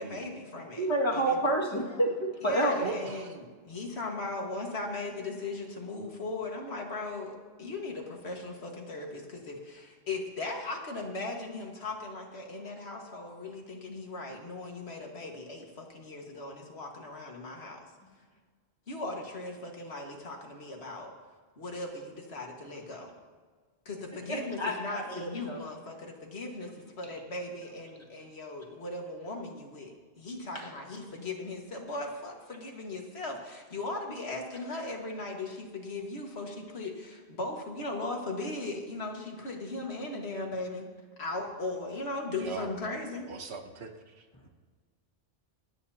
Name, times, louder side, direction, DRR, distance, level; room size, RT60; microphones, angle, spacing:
voice 1, 0.0-1.5 2.4-17.9 18.9-21.1 21.6-23.1 23.9-40.9 41.2-43.3, left 2 dB, 80° left, 1 dB, 2.0 m, -38 dB
voice 2, 0.8-2.9 24.3-25.6, right 1 dB, 25° left, -2 dB, 2.0 m, -29 dB
voice 3, 2.8-3.3 42.4-42.7 43.3-44.5, right 5 dB, 90° right, 5 dB, 1.4 m, -40 dB
27.0 x 9.4 x 2.8 m, 1.5 s
omnidirectional pair, 1.1 m